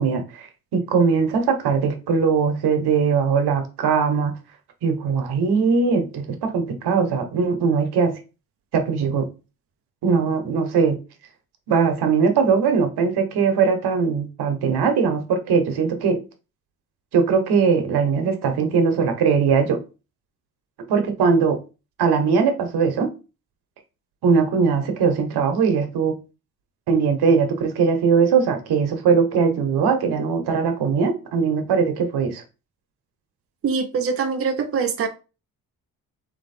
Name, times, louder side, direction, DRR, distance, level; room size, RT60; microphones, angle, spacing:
voice 1, 0.0-4.3 4.8-8.1 8.7-9.2 10.0-11.0 11.7-16.2 17.1-19.8 20.9-21.6 22.0-23.1 24.2-26.2 26.9-32.4, right 5 dB, 85° right, 1.2 m, -20 dB
voice 2, 33.6-35.1, right 5 dB, 35° right, 0.7 m, -23 dB
4.2 x 3.0 x 4.2 m
cardioid pair, 140°, 38 cm